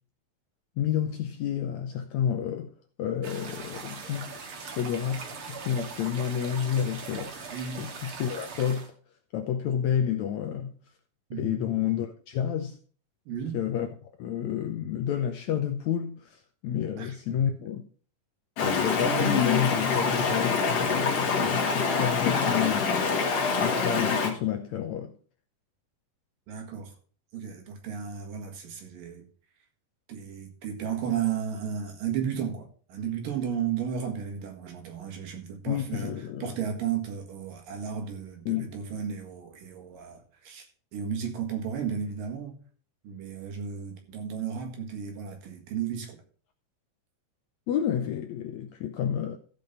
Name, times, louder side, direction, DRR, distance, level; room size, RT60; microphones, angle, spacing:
voice 1, 0.8-2.7 3.0-7.5 7.8-8.9 9.3-10.7 11.3-12.8 13.5-17.8 18.6-23.3 23.6-25.1 35.7-36.5 38.5-38.8 47.7-49.4, left 9 dB, 75° left, 1.7 m, -30 dB
sound 1, 3.2-8.9, right 5 dB, 50° right, 1.9 m, -40 dB
voice 2, 7.5-7.9 11.3-11.7 13.3-13.6 17.0-17.4 26.5-26.9 27.3-29.3 30.1-36.1 36.4-40.7 40.9-42.6 43.0-46.2, right 7 dB, 70° right, 3.5 m, -34 dB
Stream, 18.6-24.3, left 4 dB, 50° left, 2.4 m, -25 dB
15.0 x 5.2 x 5.3 m
omnidirectional pair, 4.0 m